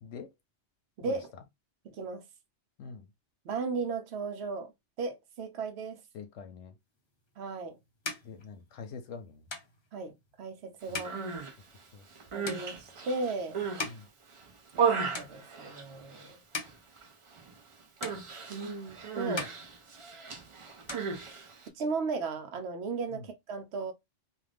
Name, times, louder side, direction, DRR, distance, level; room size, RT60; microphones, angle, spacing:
voice 1, 0.0-0.3 1.0-1.2 2.8-3.1 6.1-6.8 8.2-9.5 10.9-11.1 11.9-12.1 13.8-14.1 23.1-23.3, left 5 dB, 85° left, 0.9 m, -45 dB
voice 2, 1.9-2.2 3.4-4.7 5.0-6.0 7.4-7.8 9.9-11.1 12.3-13.6 14.7-16.4 18.5-19.5 21.7-23.9, right 4 dB, 70° right, 0.9 m, -36 dB
sound 1, 7.2-14.8 15.1-15.8 16.3-17.7 18.0-18.9 19.2-20.4 20.7-21.8, left 3 dB, 35° left, 0.5 m, -43 dB
Human voice, 10.9-11.5 12.1-13.9 14.3-16.3 16.6-17.1 17.3-17.5 18.0-21.7, right 6 dB, 45° right, 0.4 m, -35 dB
2.4 x 2.4 x 3.2 m
omnidirectional pair, 1.2 m